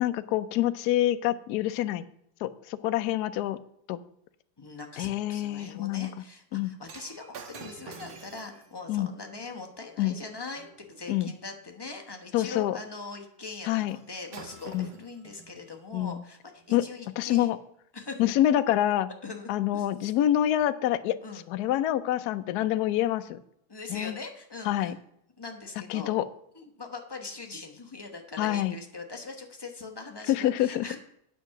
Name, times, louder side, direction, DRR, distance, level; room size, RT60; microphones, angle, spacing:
voice 1, 0.0-2.0 2.4-3.6 3.9-4.0 5.0-6.1 6.5-6.7 8.9-9.1 10.0-10.2 11.1-11.3 12.3-12.8 13.7-14.0 14.7-14.9 15.9-16.2 16.7-16.8 17.2-17.6 18.2-19.1 19.5-21.2 21.5-23.4 23.9-24.1 24.7-24.9 25.9-26.2 28.4-28.7 30.3-30.9, left 13 dB, 85° left, 11 dB, 0.8 m, -26 dB
voice 2, 4.6-17.5 17.9-18.2 19.2-20.2 21.2-21.4 23.7-24.9 25.4-26.2 26.5-31.0, left 3 dB, 20° left, 2 dB, 0.6 m, -41 dB
Shatter, 6.9-11.2 13.9-14.0 14.3-15.8 16.6-16.7, right 5 dB, 70° right, 1.9 m, -49 dB
9.3 x 7.0 x 5.8 m, 0.74 s
omnidirectional pair, 2.3 m